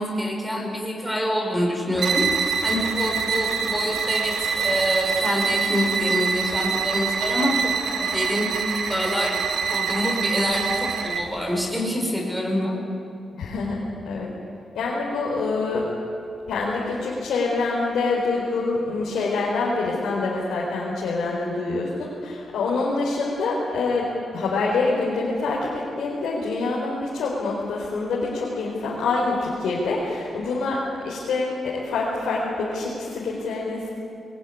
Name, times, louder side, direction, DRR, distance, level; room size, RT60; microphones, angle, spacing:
voice 1, 0.0-2.2 2.6-8.4 8.9-9.4 9.7-12.8, equal, ahead, 0 dB, 5.0 m, -26 dB
sound 1, 2.0-11.3, right 6 dB, 80° right, 1.9 m, -25 dB
voice 2, 13.4-13.8 14.0-14.3 14.7-15.9 16.5-33.9, left 3 dB, 90° left, -5 dB, 4.2 m, -26 dB
21.0 x 19.0 x 9.6 m, 2.6 s
cardioid pair, 90°, 0 cm